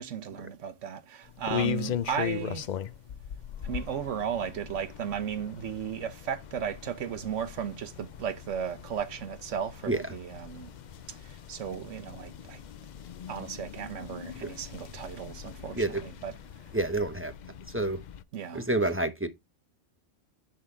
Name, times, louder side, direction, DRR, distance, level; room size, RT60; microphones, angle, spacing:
voice 1, 0.0-2.6 3.6-10.7 11.5-12.6 13.3-15.8 16.2-16.3 18.3-18.6, right 8 dB, 80° right, 1.3 m, -35 dB
sound 1, 1.2-18.2, left 9 dB, 60° left, 0.5 m, -39 dB
voice 2, 16.7-17.3 17.7-18.0 18.5-19.3, right 2 dB, 10° right, 0.8 m, -28 dB
10.0 x 3.8 x 4.5 m
omnidirectional pair, 1.2 m